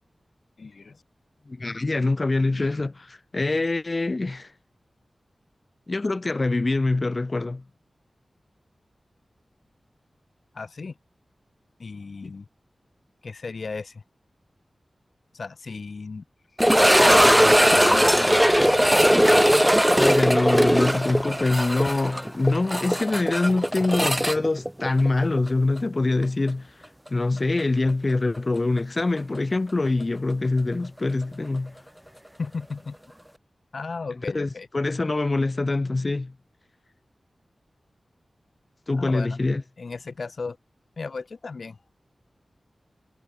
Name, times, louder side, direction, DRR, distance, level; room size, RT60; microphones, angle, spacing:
voice 1, 0.6-1.0 10.5-11.0 11.8-12.5 13.2-14.0 15.3-16.2 17.0-19.0 32.4-33.0 33.7-34.7 39.0-39.4 39.8-40.6 41.0-41.8, left 4 dB, 65° left, 4.0 m, -35 dB
voice 2, 1.5-4.5 5.9-7.6 20.0-31.8 34.3-36.4 38.9-39.6, left 2 dB, 40° left, 1.0 m, -24 dB
sound 1, 16.6-25.5 25.8-25.9 26.5-26.6 29.2-29.3, equal, 5° right, 0.9 m, -19 dB
wide cardioid pair, 90°, 0 cm